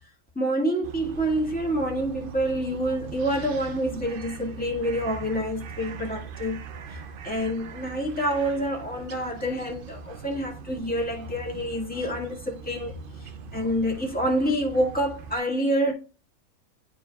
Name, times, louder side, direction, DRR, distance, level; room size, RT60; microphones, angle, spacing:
voice 1, 0.3-6.6 7.2-12.9 13.2-15.9, equal, 5° left, 1.6 m, -27 dB
sound 1, 0.8-15.4, right 7 dB, 60° right, 0.6 m, -41 dB
10.5 x 4.4 x 2.3 m
omnidirectional pair, 1.5 m